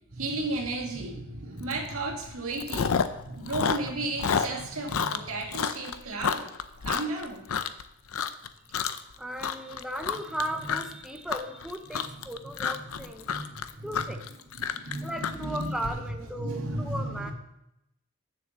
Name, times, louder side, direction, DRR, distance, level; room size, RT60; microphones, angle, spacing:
voice 1, 0.1-6.5 6.8-7.4 12.9-14.0 14.5-15.9 16.3-17.3, right 2 dB, 90° right, 1 dB, 2.0 m, -34 dB
Chewing mastication, 1.7-1.9 2.2-3.2 3.5-7.8 8.1-8.5 8.7-9.1 9.4-15.9, left 6 dB, 85° left, 0.6 m, -29 dB
voice 2, 9.2-13.3 13.8-14.3 15.0-17.3, right 1 dB, ahead, 4 dB, 0.6 m, -36 dB
6.9 x 6.8 x 7.5 m, 0.85 s
head